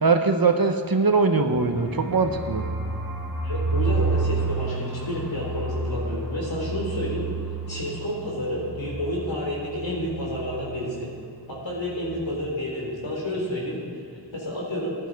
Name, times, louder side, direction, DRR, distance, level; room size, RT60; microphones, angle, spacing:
voice 1, 0.0-2.7, right 4 dB, 50° right, 6 dB, 1.1 m, -21 dB
sound 1, 1.5-11.1 11.4-11.5 11.8-12.2, right 3 dB, 5° right, 3.6 m, -30 dB
voice 2, 3.4-7.2 7.7-11.1 11.5-13.8 14.3-15.0, left 1 dB, 80° left, -4 dB, 3.9 m, -30 dB
15.0 x 11.0 x 4.8 m, 2.1 s
wide cardioid pair, 45°, 44 cm